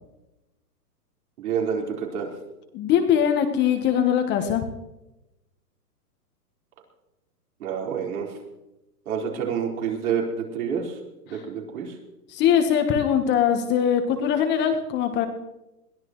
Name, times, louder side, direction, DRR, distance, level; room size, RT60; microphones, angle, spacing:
voice 1, 1.4-2.3 7.6-8.3 9.1-11.0 11.3-12.0, right 7 dB, 60° right, -1 dB, 4.5 m, -28 dB
voice 2, 2.7-4.7 12.3-15.3, left 8 dB, 20° left, 6 dB, 1.2 m, -21 dB
21.5 x 15.5 x 3.1 m, 0.95 s
hypercardioid pair, 140°, 48 cm